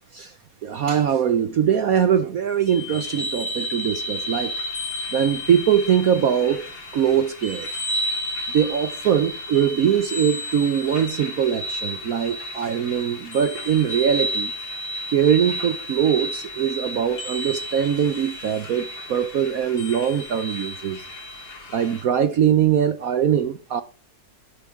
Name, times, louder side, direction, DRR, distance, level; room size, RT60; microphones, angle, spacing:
voice 1, 0.6-4.5 5.1-6.7 6.9-7.7 8.5-14.5 15.1-21.0 21.7-23.8, right 8 dB, 60° right, 1.0 m, -22 dB
sound 1, 2.7-22.0, left 1 dB, 85° left, 3.8 m, -32 dB
11.5 x 11.0 x 3.5 m
omnidirectional pair, 2.0 m